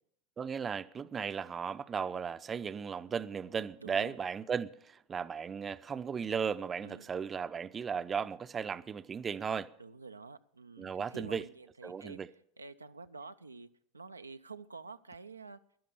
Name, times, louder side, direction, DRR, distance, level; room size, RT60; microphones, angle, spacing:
voice 1, 0.4-9.7 10.8-11.4 11.8-12.3, right 6 dB, 25° right, 0.6 m, -36 dB
voice 2, 3.8-4.2 6.8-7.1 9.8-12.2 12.6-13.7 13.9-15.6, right 4 dB, 90° right, 0.4 m, -48 dB
13.5 x 11.0 x 6.9 m
figure-of-eight pair, 80°, 0 cm